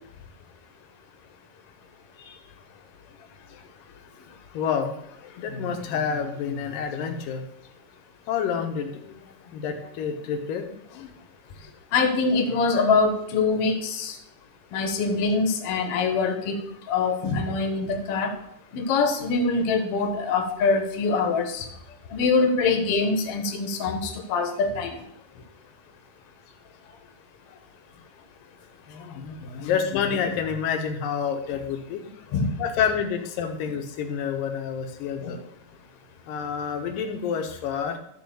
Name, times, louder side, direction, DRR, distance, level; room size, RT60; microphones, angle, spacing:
voice 1, 4.5-5.0 5.4-7.4 8.3-11.1 28.9-32.0 32.6-35.4 36.3-38.0, left 7 dB, 85° left, 6 dB, 2.7 m, -28 dB
voice 2, 11.9-14.1 14.7-16.6 16.9-18.3 18.7-21.6 22.1-25.0 32.3-32.6 35.2-35.4, left 4 dB, 55° left, 5 dB, 1.8 m, -24 dB
12.5 x 4.3 x 7.0 m, 0.75 s
omnidirectional pair, 3.9 m